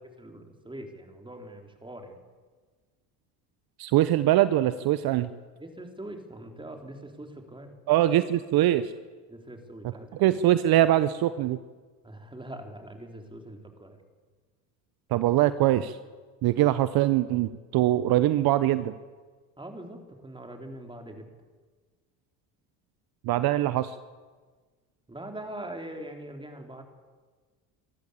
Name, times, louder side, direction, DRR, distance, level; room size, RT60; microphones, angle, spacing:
voice 1, 0.2-2.2 5.6-7.8 9.3-10.3 12.0-14.0 19.6-21.3 25.1-26.8, right 1 dB, 10° right, 4 dB, 4.0 m, -42 dB
voice 2, 3.8-5.3 7.9-8.9 10.2-11.6 15.1-16.0 16.4-18.9 23.2-24.0, right 14 dB, 60° right, 14 dB, 0.9 m, -23 dB
24.5 x 13.5 x 8.4 m, 1.4 s
supercardioid pair, 75°, 42 cm